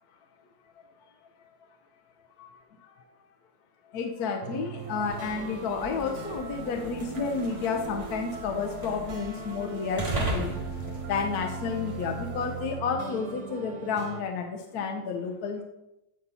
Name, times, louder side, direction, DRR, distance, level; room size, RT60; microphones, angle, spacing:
voice 1, 3.9-15.6, left 5 dB, 75° left, 3 dB, 1.2 m, -31 dB
sound 1, 4.4-14.2, right 4 dB, 75° right, 1.4 m, -39 dB
sound 2, 4.8-12.7, right 2 dB, 30° right, 1.1 m, -38 dB
7.9 x 4.1 x 5.4 m, 0.89 s
omnidirectional pair, 1.7 m